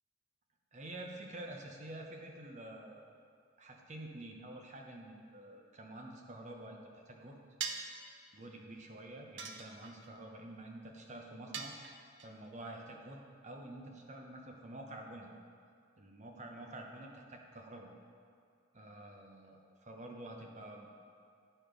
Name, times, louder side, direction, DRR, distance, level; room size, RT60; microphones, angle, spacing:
voice 1, 0.7-3.1 3.6-7.4 8.3-11.8 12.2-15.3 16.0-17.9 18.7-20.9, right 1 dB, 40° right, 1 dB, 0.9 m, -48 dB
sound 1, 7.6-8.0 9.4-10.1 11.5-12.3, right 6 dB, 65° right, 0.6 m, -41 dB
11.0 x 4.3 x 5.1 m, 2.2 s
head